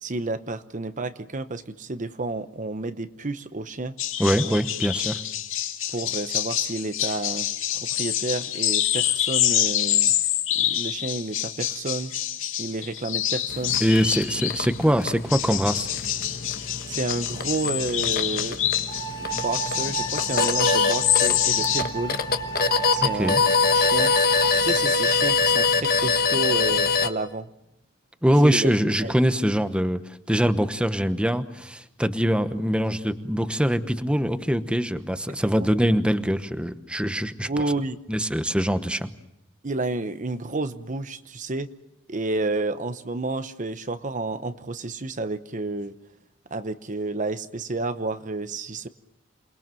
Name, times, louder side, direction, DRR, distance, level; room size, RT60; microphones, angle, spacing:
voice 1, 0.0-4.0 4.4-4.6 5.9-7.5 7.7-10.2 10.5-12.1 12.6-13.8 16.9-18.6 19.2-22.2 22.9-23.4 23.7-24.1 24.5-27.5 28.4-28.7 29.0-29.1 35.5-35.7 37.5-38.0 39.6-41.7 42.1-45.9 46.5-48.9, right 2 dB, 40° right, 11 dB, 0.9 m, -30 dB
sound 1, 4.0-14.8 15.3-21.8, left 11 dB, 75° left, 2.3 m, -26 dB
voice 2, 4.2-5.2 13.8-16.0 23.2-23.4 28.2-30.0 30.3-37.5 38.1-39.1, equal, 5° right, 10 dB, 1.0 m, -23 dB
sound 2, 13.5-27.1, left 4 dB, 45° left, 1.3 m, -25 dB
sound 3, 18.9-24.5, right 6 dB, 25° left, 3.0 m, -32 dB
28.5 x 21.0 x 7.6 m, 0.82 s
head